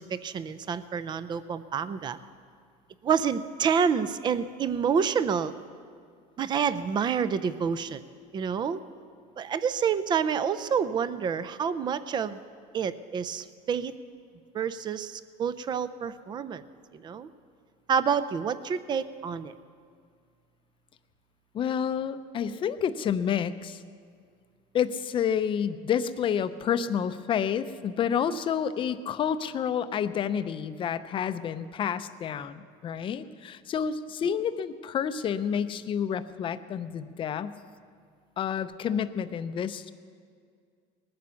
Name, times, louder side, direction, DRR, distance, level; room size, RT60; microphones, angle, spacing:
voice 1, 0.0-2.2 3.0-5.5 6.4-8.0 8.3-8.8 9.4-12.4 12.7-13.9 14.5-16.6 16.9-17.3 17.9-19.5, right 7 dB, 30° right, 14 dB, 0.5 m, -28 dB
voice 2, 21.5-23.8 24.7-37.5 38.4-39.9, left 8 dB, 35° left, 12 dB, 0.6 m, -29 dB
19.5 x 9.5 x 6.9 m, 2.1 s
cardioid pair, 145°, 16 cm